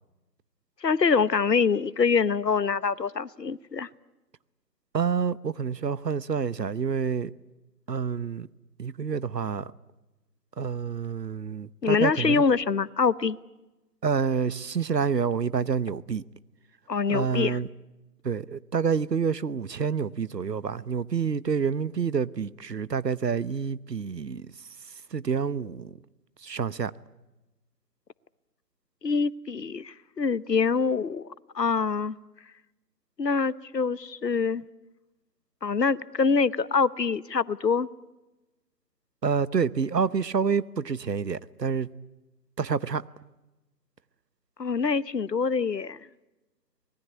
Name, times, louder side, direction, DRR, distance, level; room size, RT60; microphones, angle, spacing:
voice 1, 0.8-3.9 11.8-13.4 16.9-17.6 29.0-31.3 31.5-32.1 33.2-34.6 35.6-37.9 44.6-46.0, left 5 dB, 80° left, 1.0 m, -25 dB
voice 2, 4.9-7.3 7.9-8.5 8.8-9.7 10.6-12.4 14.0-16.2 17.1-17.7 18.2-24.5 25.1-26.0 26.4-26.9 39.2-41.9 42.6-43.0, right 6 dB, 80° right, 1.0 m, -28 dB
25.5 x 20.5 x 9.7 m
figure-of-eight pair, 155°, 49 cm